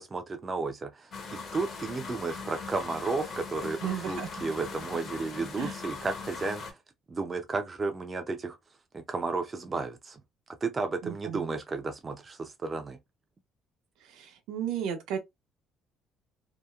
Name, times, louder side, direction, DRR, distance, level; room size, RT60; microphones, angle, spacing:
voice 1, 0.0-6.8 7.1-8.6 8.9-10.2 10.6-13.0, right 3 dB, 20° right, 0.3 m, -33 dB
sound 1, 1.1-6.7, left 4 dB, 40° left, 0.6 m, -40 dB
voice 2, 3.8-4.3 5.6-5.8 11.0-11.5 14.0-15.2, right 9 dB, 85° right, 0.7 m, -34 dB
2.8 x 2.0 x 2.2 m
cardioid pair, 170°, 0 cm